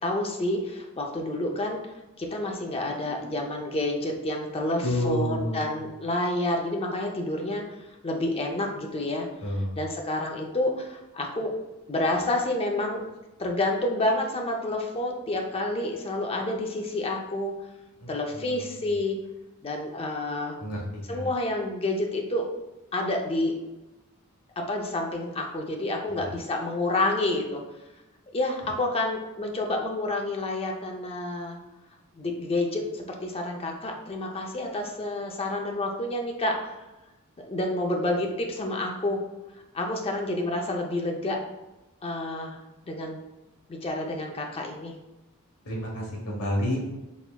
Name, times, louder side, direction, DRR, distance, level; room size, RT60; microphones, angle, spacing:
voice 1, 0.0-1.8 2.2-7.6 8.0-9.3 9.8-11.5 11.9-13.0 13.4-17.5 18.1-19.2 19.6-20.6 21.1-22.5 22.9-23.5 24.6-27.6 28.3-31.6 32.2-36.7 37.4-39.2 39.7-41.4 42.0-42.6 42.8-43.2 43.7-44.9, left 2 dB, 25° left, 1 dB, 0.5 m, -29 dB
voice 2, 4.8-5.8 9.4-9.8 18.0-18.9 20.6-21.3 26.1-26.3 45.6-46.8, left 1 dB, 75° left, -3 dB, 1.2 m, -30 dB
4.2 x 3.4 x 2.3 m, 1.0 s
head